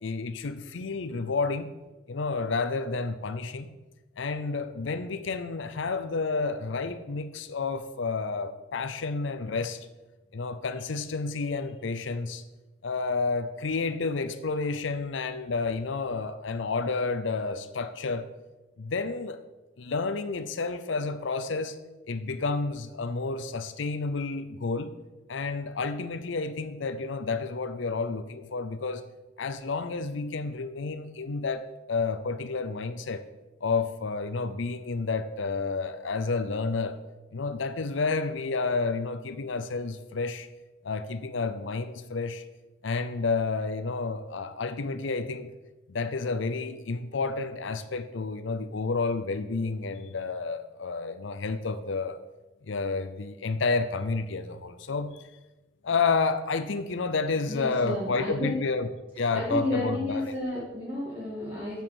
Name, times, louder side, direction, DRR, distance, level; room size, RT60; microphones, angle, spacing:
voice 1, 0.0-1.7 2.1-3.7 4.2-9.8 10.3-12.4 12.8-18.3 18.8-19.4 19.8-21.8 22.1-24.9 25.3-29.0 29.4-33.2 33.6-37.0 37.3-40.5 40.8-42.4 42.8-45.5 45.9-52.2 52.6-55.2 55.8-58.9 59.2-60.3, left 4 dB, 70° left, 11 dB, 0.6 m, -30 dB
voice 2, 57.5-58.6 59.2-61.8, left 1 dB, 25° right, -8 dB, 2.3 m, -32 dB
7.4 x 7.3 x 6.0 m, 1.1 s
head